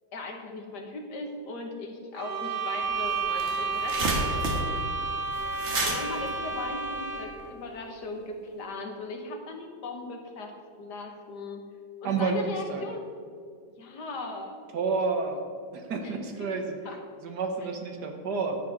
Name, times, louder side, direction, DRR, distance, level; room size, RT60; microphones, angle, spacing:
voice 1, 0.1-4.5 5.8-10.5 10.8-11.6 12.0-13.1 13.8-14.6 16.0-16.1 16.4-16.5 16.9-17.0, left 2 dB, 60° left, 3 dB, 1.8 m, -38 dB
sound 1, 2.2-7.4, right 4 dB, 85° right, 2.0 m, -31 dB
sound 2, 2.8-2.9 3.1-7.4, right 2 dB, 40° right, 1.4 m, -31 dB
voice 2, 12.0-12.8 14.7-15.4 15.7-18.6, right 4 dB, 60° right, 4 dB, 1.5 m, -30 dB
10.5 x 7.3 x 5.4 m, 2.2 s
omnidirectional pair, 2.2 m